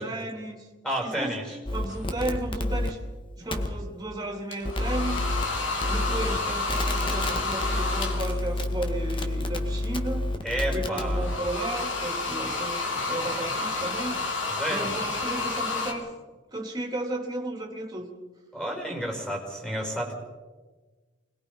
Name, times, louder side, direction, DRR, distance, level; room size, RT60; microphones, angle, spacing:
voice 1, 0.0-0.7 1.0-1.3 1.7-3.0 3.4-5.2 5.9-10.3 10.7-14.3 14.7-16.1 16.5-18.1, right 2 dB, 20° right, 2 dB, 3.2 m, -34 dB
voice 2, 0.8-1.6 10.4-11.3 14.5-14.9 18.5-20.1, equal, 5° left, 2 dB, 5.5 m, -31 dB
sound 1, 1.7-2.9 3.5-3.7 4.6-5.4 5.8-6.4 6.7-11.4, left 1 dB, 25° left, 1.9 m, -29 dB
sound 2, 1.9-2.1 4.5-8.5 11.0-15.9, left 3 dB, 70° left, 3.8 m, -30 dB
26.0 x 21.0 x 5.5 m, 1.3 s
head